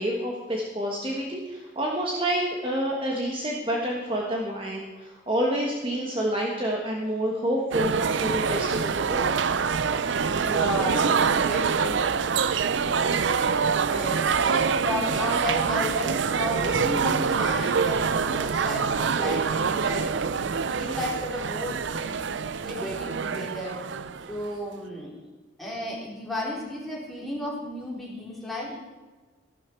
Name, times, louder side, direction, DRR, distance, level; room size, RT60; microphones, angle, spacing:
voice 1, 0.0-9.2, equal, 25° right, -1 dB, 1.4 m, -28 dB
sound 1, 7.7-24.5, right 5 dB, 65° right, 0.5 m, -25 dB
voice 2, 10.2-12.1 13.0-13.1 13.9-22.2 22.6-23.8 24.3-25.2 25.6-28.8, left 1 dB, ahead, -5 dB, 3.7 m, -34 dB
14.0 x 12.5 x 4.5 m, 1.3 s
head